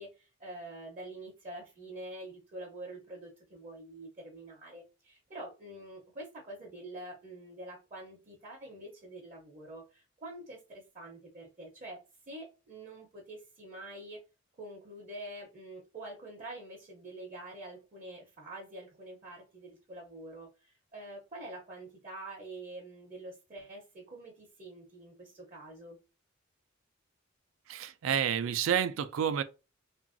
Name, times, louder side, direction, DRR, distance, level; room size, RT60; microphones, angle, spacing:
voice 1, 0.0-14.2 14.6-26.0, right 1 dB, 40° right, 0.6 m, -46 dB
voice 2, 27.7-29.4, right 8 dB, 85° right, 0.3 m, -29 dB
2.9 x 2.5 x 2.4 m
head